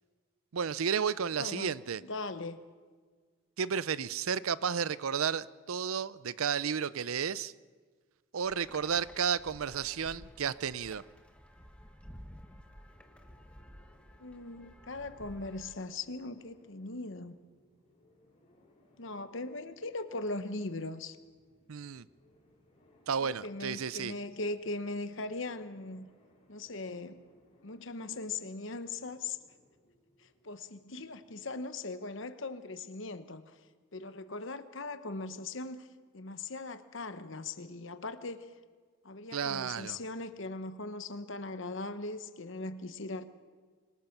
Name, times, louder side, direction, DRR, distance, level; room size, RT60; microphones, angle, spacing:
voice 1, 0.5-2.0 3.6-7.5 8.3-11.0 21.7-22.0 23.1-24.1 39.3-40.0, right 7 dB, 80° right, 18 dB, 0.5 m, -32 dB
voice 2, 1.4-1.7 2.0-2.6 14.2-17.3 19.0-21.2 23.2-26.1 26.5-27.2 27.6-29.4 30.2-33.6 33.9-35.9 36.1-38.5 39.0-43.2, left 3 dB, 60° left, 10 dB, 1.0 m, -39 dB
sound 1, 8.4-15.8, equal, 5° left, 1.1 m, -53 dB
sound 2, 12.9-31.5, left 1 dB, 30° left, 6.2 m, -67 dB
26.0 x 18.5 x 6.0 m, 1.5 s
head